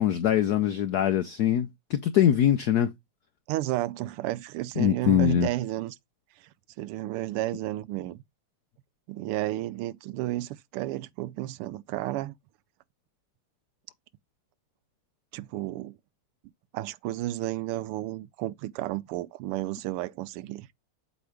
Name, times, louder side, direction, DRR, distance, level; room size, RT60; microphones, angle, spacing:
voice 1, 0.0-2.9 4.8-5.5, left 10 dB, 80° left, 0.8 m, -23 dB
voice 2, 3.5-5.9 6.4-6.5 6.8-8.2 9.1-12.3 15.3-16.0 16.7-20.7, right 16 dB, 85° right, 1.5 m, -32 dB
7.9 x 3.1 x 4.9 m
omnidirectional pair, 2.4 m